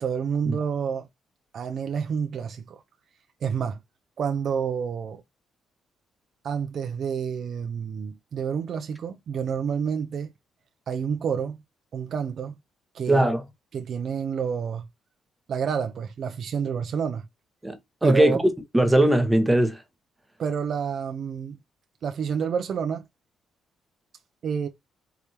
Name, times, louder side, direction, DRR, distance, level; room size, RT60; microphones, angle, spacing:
voice 1, 0.0-1.1 1.5-2.8 3.4-3.8 4.2-5.2 6.4-10.3 10.9-11.6 11.9-12.6 12.9-13.3 13.7-14.9 15.5-17.3 18.0-18.4 20.4-21.6 22.0-23.1 24.4-24.7, right 7 dB, 60° right, 0.6 m, -29 dB
voice 2, 13.1-13.4 17.6-18.4 18.7-19.8, right 1 dB, 10° right, 1.1 m, -20 dB
4.8 x 3.4 x 2.9 m
cardioid pair, 90°, 0 cm